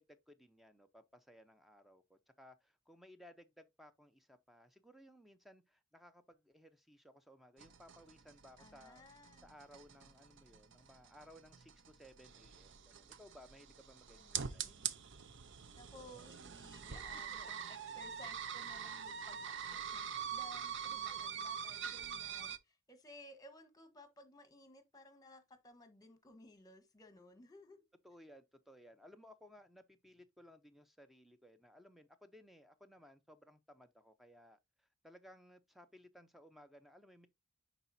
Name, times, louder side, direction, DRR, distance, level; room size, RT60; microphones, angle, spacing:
voice 1, 0.0-9.0 9.4-14.9 17.1-17.2 20.9-21.2 21.8-21.9 28.0-37.3, equal, ahead, 0.6 m, -60 dB
sound 1, 7.6-22.6, right 8 dB, 55° right, 0.6 m, -44 dB
voice 2, 8.6-9.5 14.1-14.9 15.8-27.8, left 1 dB, 15° left, 1.2 m, -58 dB
10.0 x 4.0 x 2.6 m
head